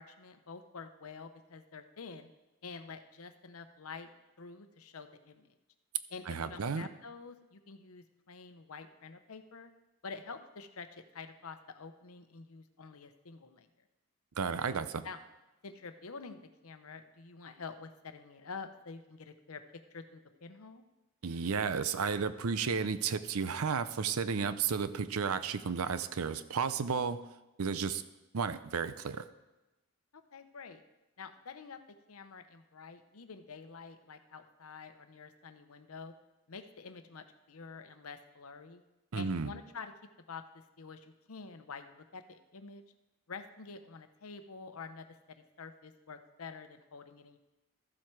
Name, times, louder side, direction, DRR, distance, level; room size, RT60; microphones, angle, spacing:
voice 1, 0.0-2.3 2.6-4.1 4.4-5.5 6.1-9.7 10.0-13.7 15.0-15.2 15.6-19.6 19.9-20.8 30.1-30.8 31.2-36.1 36.5-38.8 39.1-39.9 40.3-40.5 40.8-42.8 43.3-47.4, left 4 dB, 85° left, 9 dB, 0.8 m, -48 dB
voice 2, 6.3-6.9 14.4-15.1 21.2-27.2 27.6-28.0 28.3-29.2 39.1-39.5, right 5 dB, 90° right, 13 dB, 0.6 m, -33 dB
13.5 x 7.6 x 4.7 m, 1.0 s
head